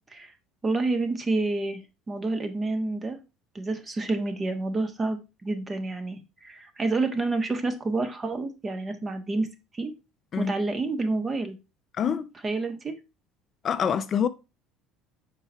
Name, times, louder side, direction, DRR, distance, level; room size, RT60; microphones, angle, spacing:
voice 1, 0.6-3.2 3.5-9.5 9.7-9.9 10.4-11.6 12.4-13.0, right 3 dB, 25° right, 1.4 m, -29 dB
voice 2, 12.0-12.3 13.6-14.3, left 7 dB, 40° left, 0.5 m, -25 dB
6.0 x 4.5 x 4.3 m
supercardioid pair, 95°, 0 cm